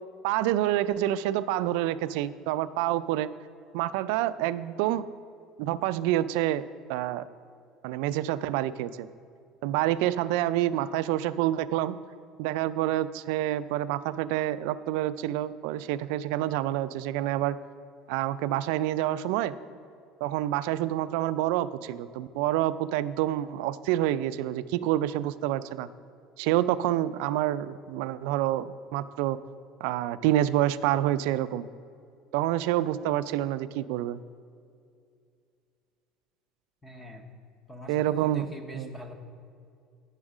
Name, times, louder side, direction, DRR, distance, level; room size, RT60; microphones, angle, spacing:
voice 1, 0.2-3.3 3.7-5.0 5.6-6.6 6.9-7.2 7.8-9.1 9.6-12.0 12.4-17.6 18.1-19.5 20.2-25.9 26.4-29.4 29.8-31.7 32.3-34.2 37.9-38.5 38.7-38.9, right 13 dB, 80° right, 15 dB, 0.3 m, -27 dB
voice 2, 36.8-37.2 37.7-39.1, left 1 dB, 10° left, 4 dB, 0.7 m, -44 dB
9.6 x 6.3 x 4.9 m, 2.4 s
cardioid pair, 165°, 0 cm